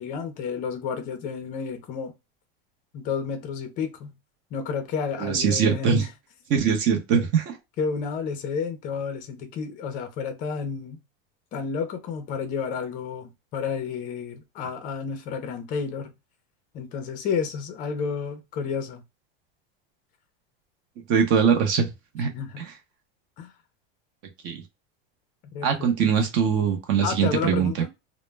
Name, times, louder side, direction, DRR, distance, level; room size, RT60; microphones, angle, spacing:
voice 1, 0.0-2.1 2.9-4.1 4.5-6.1 7.8-11.0 11.5-16.1 16.7-19.0 22.3-22.7 23.4-23.5 25.4-26.1 27.0-27.9, left 6 dB, 25° left, 0.5 m, -31 dB
voice 2, 5.2-6.0 6.5-7.6 21.1-21.9 22.1-22.3 22.6-22.7 24.4-24.6 25.6-27.7, right 7 dB, 40° right, 0.7 m, -22 dB
2.1 x 2.0 x 3.2 m
supercardioid pair, 160°, 30 cm